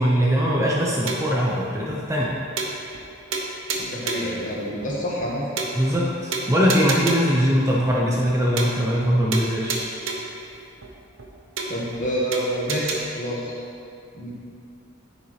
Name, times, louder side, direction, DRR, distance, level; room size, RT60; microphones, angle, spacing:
voice 1, 0.0-2.3 5.7-9.8, equal, 15° right, -4 dB, 0.7 m, -21 dB
sound 1, 1.1-1.4 1.8-1.9 2.2-2.3 2.6-3.1 3.3-4.4 4.8-4.9 5.2-5.3 5.6-6.0 6.3-7.4 7.8-7.9 8.2-8.3 8.6-9.1 9.3-10.4 10.8-10.9 11.2-11.3 11.6-12.0 12.3-13.0, right 3 dB, 70° right, 0.9 m, -30 dB
voice 2, 3.8-5.5 11.7-13.5 14.1-14.3, equal, 35° left, -5 dB, 1.6 m, -27 dB
9.6 x 7.2 x 3.2 m, 2.5 s
head